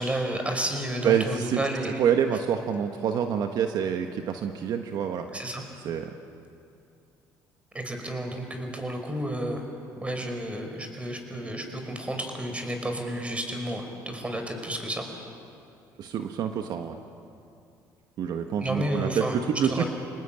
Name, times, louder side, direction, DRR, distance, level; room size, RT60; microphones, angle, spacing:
voice 1, 0.0-2.0 5.3-5.6 7.7-9.6 10.0-15.1 18.6-19.4 19.6-19.9, right 1 dB, 15° right, 5 dB, 5.3 m, -31 dB
voice 2, 1.0-1.6 2.0-5.3 5.8-6.1 16.0-17.0 18.2-19.8, right 8 dB, 60° right, 5 dB, 1.5 m, -27 dB
29.5 x 19.0 x 9.1 m, 2.5 s
supercardioid pair, 90°, 8 cm